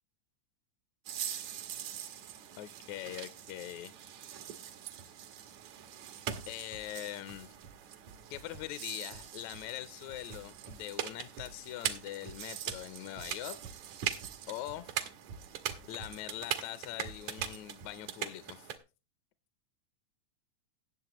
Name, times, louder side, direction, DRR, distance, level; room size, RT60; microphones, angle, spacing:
sound 1, 1.1-18.8, right 9 dB, 75° right, 2.3 m, -41 dB
voice 1, 2.6-3.9 6.5-7.5 8.3-13.6 14.5-14.9 15.9-18.7, left 14 dB, 75° left, 1.9 m, -42 dB
18.0 x 7.3 x 2.9 m
omnidirectional pair, 3.4 m